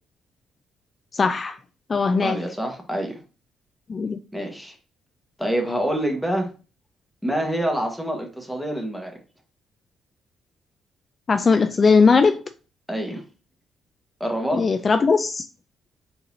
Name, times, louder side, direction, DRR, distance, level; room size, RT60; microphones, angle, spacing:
voice 1, 1.1-1.6 1.9-2.4 3.9-4.2 11.3-12.4 14.5-15.5, left 4 dB, 35° left, 0.3 m, -19 dB
voice 2, 2.2-3.2 4.3-4.8 5.4-6.5 7.2-9.2 12.9-13.2 14.2-14.7, right 1 dB, ahead, 1.4 m, -26 dB
4.5 x 3.9 x 2.7 m
cardioid pair, 90°, 0 cm